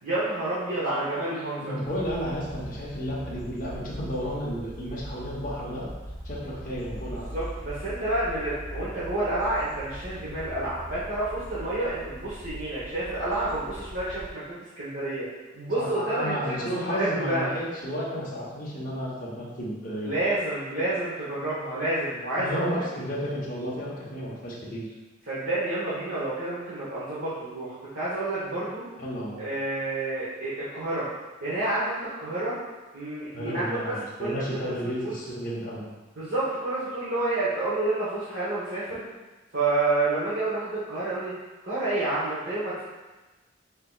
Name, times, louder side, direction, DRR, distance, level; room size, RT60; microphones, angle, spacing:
voice 1, 0.0-1.7 7.3-14.4 14.8-15.3 15.5-17.5 20.0-22.8 25.3-28.8 29.4-31.1 31.4-32.6 32.9-34.7 35.0-35.2 36.2-39.0 39.5-41.3 41.6-42.8, right 2 dB, 65° right, -11 dB, 1.0 m, -29 dB
voice 2, 1.1-5.9 6.2-7.3 15.8-20.1 22.4-24.9 29.0-29.4 33.3-35.9, equal, 45° left, -7 dB, 0.9 m, -32 dB
sound 1, 1.8-14.3, equal, 20° left, 0.9 m, -40 dB
5.5 x 2.8 x 2.3 m, 1.2 s
head